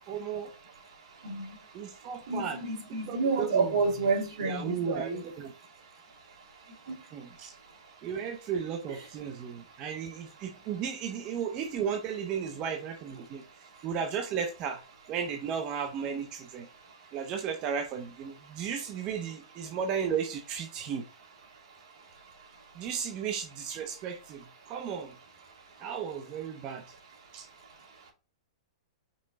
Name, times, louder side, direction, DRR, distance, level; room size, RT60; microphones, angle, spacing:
voice 1, 0.1-0.5 1.7-2.6 3.0-3.7 4.4-5.5 7.1-7.5 8.0-13.4 13.8-14.8 15.1-16.7 17.1-21.0 22.8-25.2 25.8-26.8 27.3-27.5, right 7 dB, 25° right, 0.7 m, -34 dB
voice 2, 2.3-5.2 6.9-7.0 8.9-9.0, right 4 dB, 65° right, 2.9 m, -29 dB
5.4 x 4.3 x 4.0 m
hypercardioid pair, 165°, 3 cm